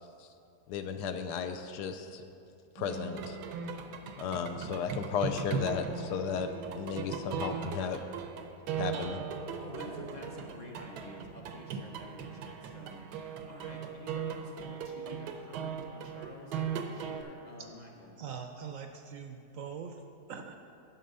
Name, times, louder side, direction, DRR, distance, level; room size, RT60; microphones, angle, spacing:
voice 1, 0.7-2.2 2.7-3.4 4.2-8.0 8.8-9.2, left 6 dB, 80° left, 8 dB, 1.2 m, -34 dB
sound 1, 2.8-17.2, right 6 dB, 85° right, 1.2 m, -38 dB
voice 2, 9.6-18.1, left 1 dB, 40° left, 0 dB, 0.6 m, -49 dB
voice 3, 18.2-20.5, right 6 dB, 70° right, 5 dB, 0.8 m, -43 dB
10.0 x 5.6 x 5.4 m, 2.5 s
omnidirectional pair, 1.7 m